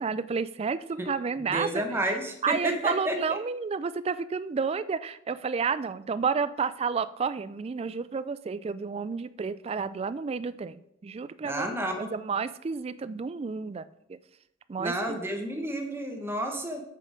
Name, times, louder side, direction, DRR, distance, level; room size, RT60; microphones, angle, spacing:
voice 1, 0.0-2.1 2.4-14.2 14.7-15.2, right 5 dB, 30° right, 15 dB, 0.3 m, -31 dB
voice 2, 1.4-3.4 11.4-12.1 14.8-16.8, right 1 dB, 10° right, 4 dB, 1.1 m, -31 dB
7.6 x 6.6 x 5.1 m, 0.77 s
head